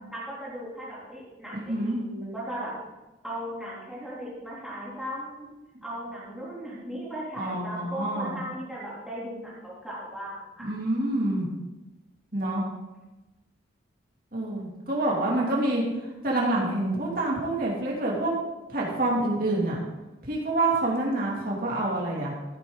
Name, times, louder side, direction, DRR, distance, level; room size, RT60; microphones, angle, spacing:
voice 1, 0.1-2.7 3.2-5.5 5.8-10.7, equal, ahead, -8 dB, 3.2 m, -37 dB
voice 2, 1.5-2.0 7.4-8.4 10.6-11.5 12.3-12.7 14.3-15.8 16.2-18.3 18.7-19.8 20.2-22.3, right 2 dB, 45° right, -3 dB, 2.8 m, -27 dB
14.5 x 8.8 x 3.9 m, 1.1 s
head